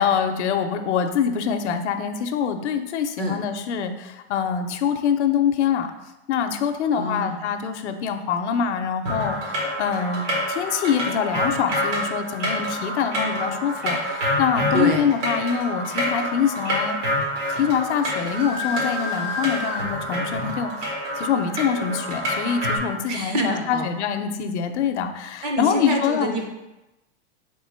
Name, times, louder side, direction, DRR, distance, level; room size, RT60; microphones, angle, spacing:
voice 1, 0.0-5.9 6.3-10.2 10.5-17.0 17.5-20.7 21.2-26.3, left 7 dB, 70° left, 7 dB, 0.6 m, -24 dB
voice 2, 6.9-7.4 14.7-15.1 23.1-23.9 25.4-26.4, right 1 dB, 35° right, 2 dB, 0.6 m, -26 dB
sound 1, 9.0-22.8, equal, 75° right, 1.6 m, -27 dB
sound 2, 17.4-17.6 18.1-19.8, left 3 dB, 55° right, 1.1 m, -31 dB
3.7 x 3.2 x 4.3 m, 0.99 s
supercardioid pair, 180°, 36 cm